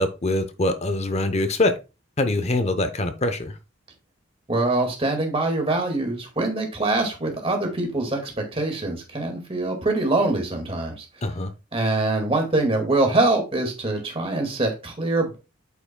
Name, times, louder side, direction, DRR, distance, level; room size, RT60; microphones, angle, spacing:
voice 1, 0.0-1.7 2.2-3.5 11.2-11.5, left 2 dB, 35° left, 10 dB, 0.7 m, -23 dB
voice 2, 4.5-11.0 11.7-15.4, right 2 dB, 30° right, 3 dB, 1.9 m, -24 dB
8.2 x 5.8 x 2.2 m, 0.29 s
head